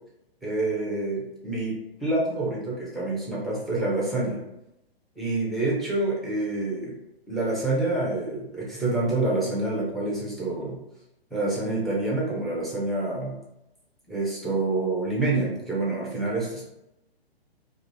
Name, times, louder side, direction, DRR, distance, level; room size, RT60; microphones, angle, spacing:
voice 1, 0.4-4.4 5.2-6.9 7.3-10.8 11.3-13.3 14.1-16.6, right 2 dB, ahead, -5 dB, 0.5 m, -27 dB
2.9 x 2.5 x 3.9 m, 0.88 s
figure-of-eight pair, 125°, 31 cm